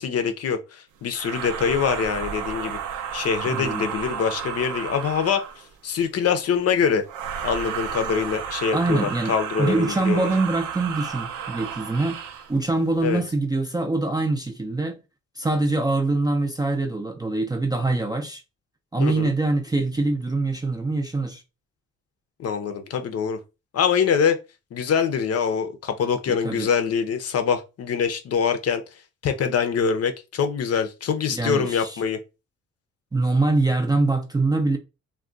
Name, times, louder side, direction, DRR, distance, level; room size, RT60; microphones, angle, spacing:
voice 1, 0.0-2.8 3.1-5.4 5.8-7.0 7.4-10.3 13.0-13.2 19.0-19.3 22.4-23.4 23.7-24.4 24.7-28.8 29.2-32.2, left 6 dB, 55° left, 0.6 m, -24 dB
sound 1, 1.1-5.7 7.0-12.5, right 8 dB, 85° right, 0.6 m, -32 dB
voice 2, 3.4-3.9 8.7-12.2 12.5-15.0 15.4-18.4 18.9-21.4 26.3-26.7 31.3-32.0 33.1-34.8, right 2 dB, 15° right, 0.4 m, -24 dB
2.3 x 2.2 x 3.7 m
cardioid pair, 90°, 30 cm